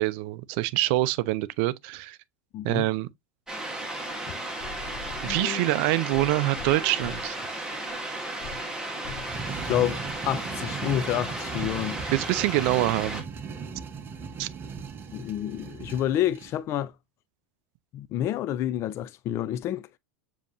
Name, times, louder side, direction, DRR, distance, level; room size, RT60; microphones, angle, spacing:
voice 1, 0.0-2.2 2.6-3.1 5.2-7.4 12.1-13.2 14.4-14.5, right 17 dB, 60° right, 0.4 m, -25 dB
voice 2, 2.5-2.9 4.3-4.4 5.2-5.6 9.7-12.1 15.1-16.9 17.9-19.9, left 12 dB, 40° left, 0.4 m, -29 dB
sound 1, 3.5-13.2, right 1 dB, 10° right, 1.5 m, -34 dB
sound 2, 4.1-4.2 4.6-5.5 6.1-7.4 7.9-8.0 8.4-8.6 9.0-9.3 10.0-10.1, left 5 dB, 65° left, 1.1 m, -41 dB
sound 3, 9.2-16.6, right 5 dB, 30° right, 1.0 m, -38 dB
7.0 x 2.9 x 2.5 m
hypercardioid pair, 105°, 7 cm